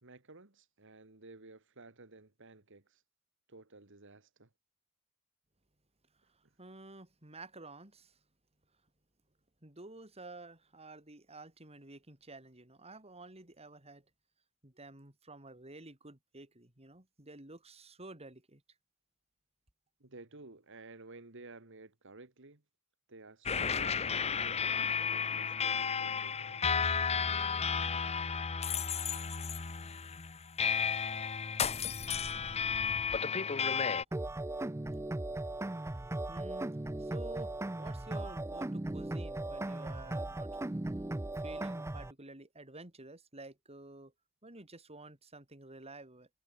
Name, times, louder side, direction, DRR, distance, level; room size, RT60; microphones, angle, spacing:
voice 1, 0.0-3.0 3.5-4.5 20.0-22.6 23.1-27.1, right 3 dB, 65° right, 2.3 m, -54 dB
voice 2, 6.2-8.2 9.6-14.0 14.6-18.6 36.3-40.6 41.4-44.1 44.4-46.3, right 2 dB, 30° right, 4.6 m, -51 dB
sound 1, 23.5-34.0, left 6 dB, 30° left, 0.8 m, -33 dB
sound 2, 34.1-42.1, right 2 dB, 15° right, 0.5 m, -37 dB
head